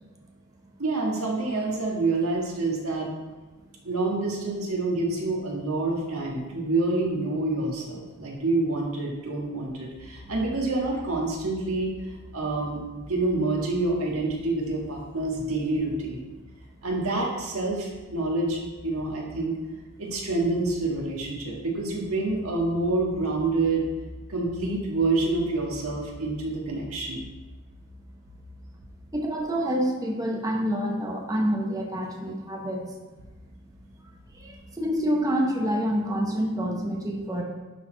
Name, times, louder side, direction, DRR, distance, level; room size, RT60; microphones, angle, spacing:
voice 1, 0.8-3.1 3.8-11.9 12.3-16.2 16.8-19.6 20.0-23.8 24.3-27.2, right 2 dB, 70° right, -2 dB, 1.5 m, -27 dB
voice 2, 29.1-32.9 34.3-37.4, equal, 15° right, 0 dB, 0.8 m, -27 dB
11.0 x 4.2 x 3.8 m, 1.2 s
head